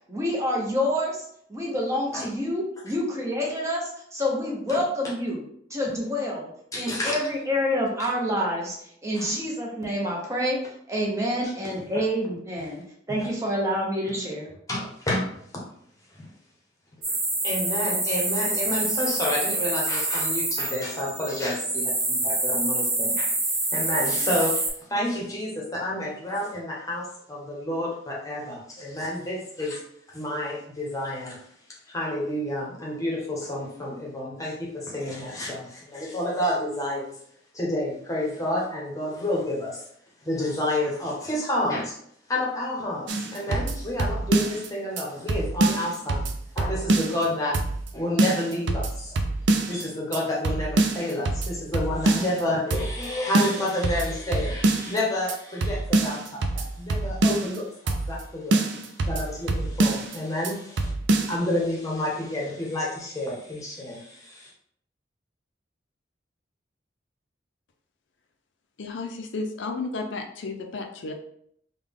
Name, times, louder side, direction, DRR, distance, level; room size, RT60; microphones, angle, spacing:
voice 1, 0.1-1.2 1.5-5.4 5.7-6.5 6.8-8.8 9.0-10.6 10.9-12.8 13.1-14.5, equal, 15° right, -2 dB, 0.8 m, -27 dB
voice 2, 6.7-7.1 8.0-8.1 9.1-9.3 11.4-11.5 12.6-12.7 13.1-13.3 14.1-14.2 14.7-15.4 16.1-16.3 17.1-17.2 17.4-29.8 30.1-31.4 31.8-37.2 37.5-39.9 40.2-41.9 42.3-47.6 47.9-49.2 49.7-60.9 61.3-64.5, left 1 dB, 20° left, -4 dB, 0.9 m, -30 dB
sound 1, 17.0-24.7, right 2 dB, 45° right, 1.3 m, -26 dB
sound 2, 43.1-44.7 45.0-45.1 45.3-47.3 47.5-47.9 48.2-49.8 50.1-50.2 50.4-52.4 52.7-53.1 53.3-55.0 55.3-55.4 55.6-57.6 57.9-58.2 58.5-60.2 60.4-60.5 60.8-61.4, right 2 dB, 75° right, 0.4 m, -25 dB
voice 3, 68.8-71.1, left 3 dB, 80° left, 4 dB, 0.5 m, -33 dB
3.7 x 2.3 x 3.5 m, 0.68 s
head